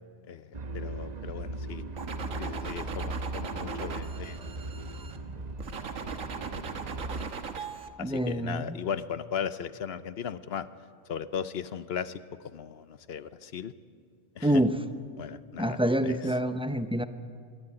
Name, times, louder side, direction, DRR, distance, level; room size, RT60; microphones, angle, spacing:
voice 1, 0.3-1.8 2.4-4.4 7.7-10.7 11.1-13.7 14.4-14.7 15.2-16.4, left 7 dB, 55° left, 14 dB, 0.8 m, -37 dB
sound 1, 0.5-7.3, right 2 dB, 35° right, 1.0 m, -38 dB
sound 2, 2.0-5.2 5.6-7.9, right 5 dB, 70° right, 1.6 m, -38 dB
voice 2, 8.0-8.6 14.4-14.8 15.6-17.0, right 1 dB, 10° right, 10 dB, 0.3 m, -26 dB
23.5 x 13.0 x 9.9 m, 2.1 s
omnidirectional pair, 1.4 m